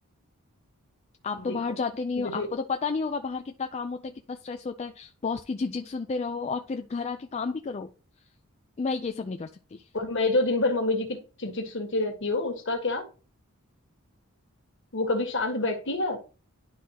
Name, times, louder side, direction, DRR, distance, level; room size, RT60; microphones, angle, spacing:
voice 1, 1.2-7.9 8.8-9.9, left 4 dB, 30° left, 0.4 m, -31 dB
voice 2, 2.2-2.5 9.9-13.0 14.9-16.2, left 2 dB, 55° left, 1.6 m, -27 dB
11.0 x 3.8 x 2.9 m
head